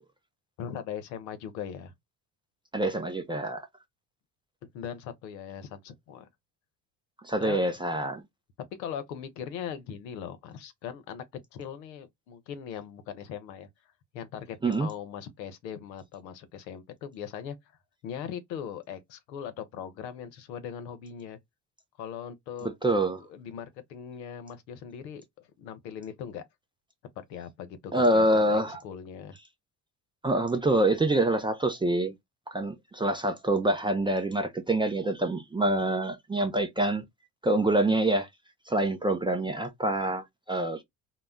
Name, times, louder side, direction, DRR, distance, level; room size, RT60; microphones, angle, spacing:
voice 1, 0.6-1.9 4.7-6.3 7.4-7.6 8.8-11.2 11.5-13.7 14.1-17.6 18.0-21.4 22.0-22.7 23.3-25.2 25.6-26.4 27.2-29.4, left 8 dB, 90° left, 0.6 m, -40 dB
voice 2, 2.7-3.7 7.2-8.2 14.6-14.9 22.6-23.2 27.9-28.8 30.2-32.2 32.5-37.0 37.4-38.3 38.7-40.8, right 1 dB, 10° right, 0.3 m, -26 dB
2.1 x 2.0 x 3.5 m
hypercardioid pair, 60°, 49 cm